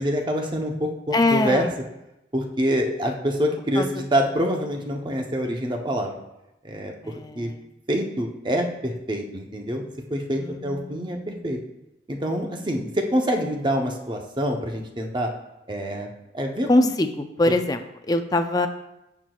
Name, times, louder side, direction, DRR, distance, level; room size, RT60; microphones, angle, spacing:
voice 1, 0.0-1.7 2.3-6.1 6.6-6.9 7.3-7.5 7.9-9.8 10.1-11.6 12.1-15.3 15.7-16.1 16.3-16.7 17.5-17.6, equal, 25° right, 2 dB, 0.8 m, -26 dB
voice 2, 1.1-1.7 3.8-3.9 7.0-7.7 10.4-11.4 16.7-18.7, left 2 dB, 20° left, 8 dB, 0.4 m, -23 dB
15.5 x 6.1 x 2.4 m, 0.91 s
head